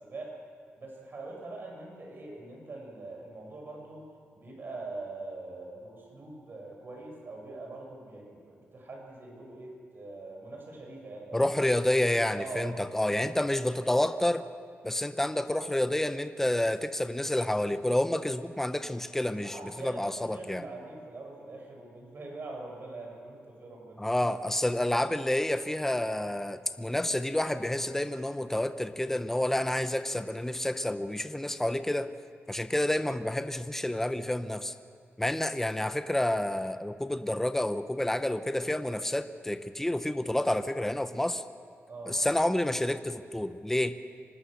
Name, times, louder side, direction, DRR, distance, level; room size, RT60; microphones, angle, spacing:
voice 1, 0.0-0.4 0.8-4.1 4.4-11.5 12.3-13.3 19.4-24.0 41.9-42.2, right 2 dB, 50° right, 0 dB, 7.0 m, -43 dB
voice 2, 11.3-14.4 14.8-20.6 24.0-32.1 32.5-34.7 35.2-41.4 42.1-44.0, left 1 dB, 10° left, 10 dB, 0.8 m, -29 dB
25.0 x 19.0 x 6.7 m, 2.4 s
cardioid pair, 95°, 5 cm